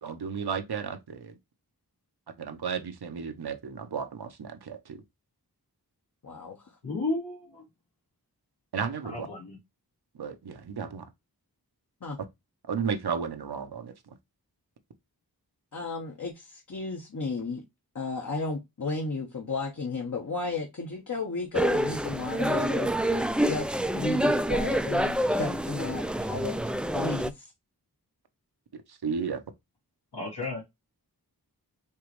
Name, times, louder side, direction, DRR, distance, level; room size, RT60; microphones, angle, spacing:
voice 1, 0.0-1.4 2.4-5.0 8.7-9.3 10.1-11.1 12.7-14.2 28.7-29.4, right 6 dB, 75° right, 0.8 m, -34 dB
voice 2, 6.2-6.7 12.0-12.2 15.7-17.6 17.9-26.0 26.3-26.5 26.9-27.5, left 3 dB, 50° left, 1.0 m, -33 dB
voice 3, 6.8-7.6 9.0-9.6 30.1-30.6, left 2 dB, 80° left, 2.4 m, -33 dB
sound 1, 21.5-27.3, right 1 dB, 5° right, 0.3 m, -27 dB
4.6 x 3.0 x 3.1 m
wide cardioid pair, 55°, 39 cm